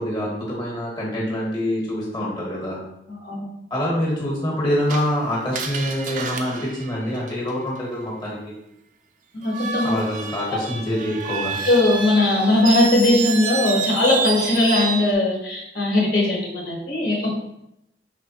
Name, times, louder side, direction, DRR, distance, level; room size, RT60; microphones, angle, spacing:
voice 1, 0.0-2.8 3.7-8.5 9.8-11.6, equal, 25° left, -4 dB, 1.2 m, -25 dB
voice 2, 3.1-3.5 9.3-10.0 11.6-17.3, left 2 dB, 55° left, -3 dB, 1.1 m, -19 dB
Screech, 4.9-7.8 9.4-15.1, right 5 dB, 45° right, 0.4 m, -29 dB
5.0 x 3.3 x 2.8 m, 0.81 s
head